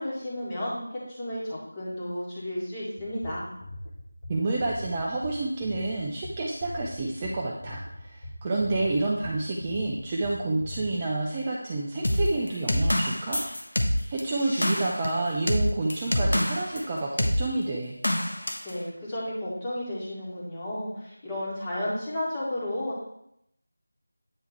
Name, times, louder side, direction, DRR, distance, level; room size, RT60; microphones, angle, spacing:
voice 1, 0.0-3.4 18.6-23.0, left 1 dB, 15° left, -9 dB, 2.1 m, -33 dB
sound 1, 3.0-10.9, left 1 dB, 50° left, 1.2 m, -41 dB
voice 2, 4.3-13.4 14.1-18.0, right 2 dB, 20° right, -3 dB, 0.6 m, -29 dB
sound 2, 12.0-16.8 17.2-17.4 18.0-18.7, equal, 70° left, 1.1 m, -26 dB
8.9 x 3.5 x 4.4 m, 0.76 s
figure-of-eight pair, 170°, 0 cm